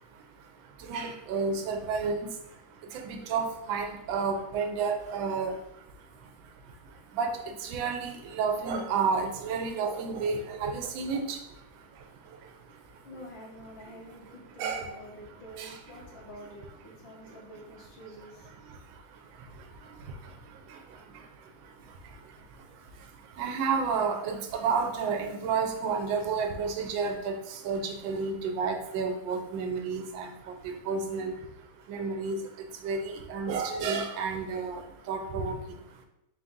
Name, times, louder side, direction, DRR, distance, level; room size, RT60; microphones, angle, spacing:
voice 1, 0.0-13.1 14.6-14.9 15.6-16.0 17.1-17.4 18.6-36.1, right 5 dB, 90° right, 5 dB, 1.3 m, -32 dB
voice 2, 12.5-18.7, equal, 80° left, -3 dB, 1.8 m, -48 dB
4.2 x 2.6 x 3.6 m, 0.87 s
omnidirectional pair, 2.0 m